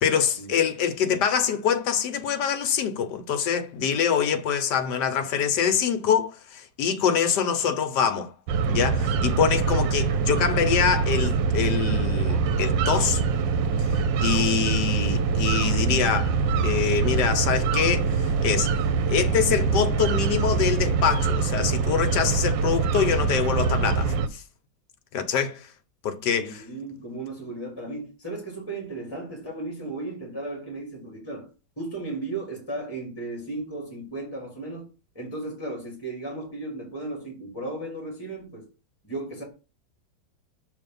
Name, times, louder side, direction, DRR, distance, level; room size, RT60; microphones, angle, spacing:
voice 1, 0.0-8.3 8.7-13.2 14.2-16.4 16.6-18.7 19.1-24.4 25.1-25.7 26.0-26.6, left 7 dB, 70° left, 1.3 m, -25 dB
sound 1, 8.5-24.3, right 5 dB, 80° right, 1.3 m, -24 dB
voice 2, 26.3-31.5 31.8-34.9 35.2-38.7 39.0-39.4, right 2 dB, 15° left, 1.9 m, -35 dB
6.6 x 3.3 x 5.3 m
omnidirectional pair, 2.0 m